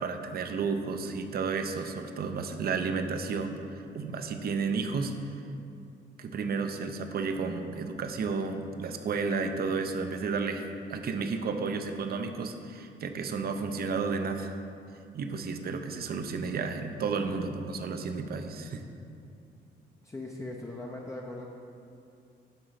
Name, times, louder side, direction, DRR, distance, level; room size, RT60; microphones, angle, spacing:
voice 1, 0.0-5.1 6.2-10.6 10.9-14.6 15.1-18.8, right 4 dB, 50° right, 6 dB, 0.6 m, -32 dB
voice 2, 20.0-21.5, left 2 dB, 15° left, -1 dB, 0.6 m, -39 dB
8.0 x 3.8 x 5.7 m, 2.5 s
cardioid pair, 90°, 20 cm